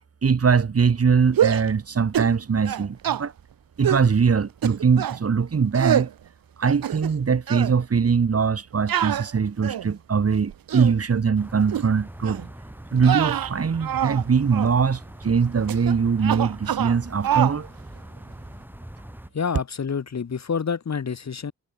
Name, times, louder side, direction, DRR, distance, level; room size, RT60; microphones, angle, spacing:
voice 1, 0.2-3.3 3.8-6.1 6.6-12.4 12.9-17.7, right 6 dB, 40° right, 1.5 m, -22 dB
sound 1, 1.3-1.7 2.1-2.4 2.6-3.2 3.8-4.1 4.6-5.2 5.7-6.1 6.6-7.2 7.5-7.7 8.9-9.9 10.5-10.9 11.7-11.9 12.2-12.5 13.0-14.2 14.5-14.7 15.7-15.9 16.2-17.0 17.2-17.6, right 10 dB, 75° right, 0.8 m, -25 dB
sound 2, 11.4-19.3, right 1 dB, 5° right, 3.2 m, -42 dB
voice 2, 19.3-21.5, left 6 dB, 50° left, 1.7 m, -28 dB
wide cardioid pair, 145°, 35 cm